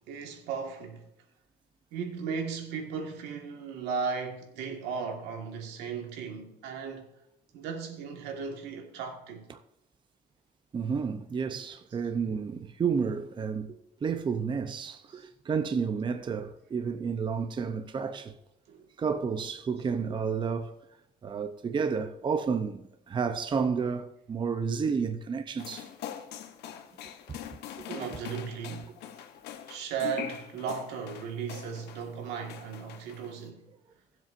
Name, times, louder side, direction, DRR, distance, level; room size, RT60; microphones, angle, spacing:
voice 1, 0.1-1.0 1.9-7.1 7.5-9.5 15.1-15.3 18.7-18.9 27.9-29.0 29.7-33.6, right 6 dB, 90° right, 1.7 m, -36 dB
voice 2, 10.7-18.4 19.0-20.8 21.2-25.9 27.3-27.4 27.8-27.9, right 6 dB, 30° right, 0.6 m, -31 dB
sound 1, 25.6-32.1 32.4-33.4, left 10 dB, 80° left, 1.0 m, -43 dB
19.0 x 7.5 x 2.6 m
cardioid pair, 110°, 17 cm